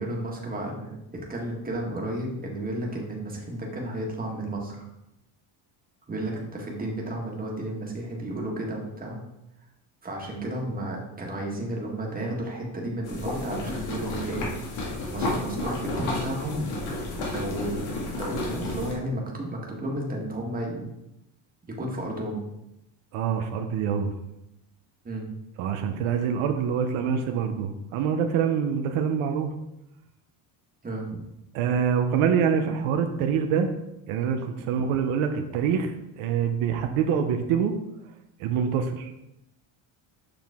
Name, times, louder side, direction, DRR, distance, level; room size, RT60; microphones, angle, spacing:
voice 1, 0.0-4.9 6.1-9.2 10.0-14.5 14.9-16.7 17.2-20.8 21.7-22.4 25.0-25.3 30.8-31.2, right 1 dB, 15° right, -1 dB, 1.5 m, -33 dB
sound 1, 13.1-18.9, left 2 dB, 70° left, 2.2 m, -31 dB
voice 2, 23.1-24.1 25.6-29.5 31.5-33.7 34.1-35.9 36.2-37.8 38.4-39.1, right 7 dB, 80° right, 5 dB, 0.9 m, -25 dB
6.9 x 5.9 x 3.6 m, 0.87 s
cardioid pair, 140°, 49 cm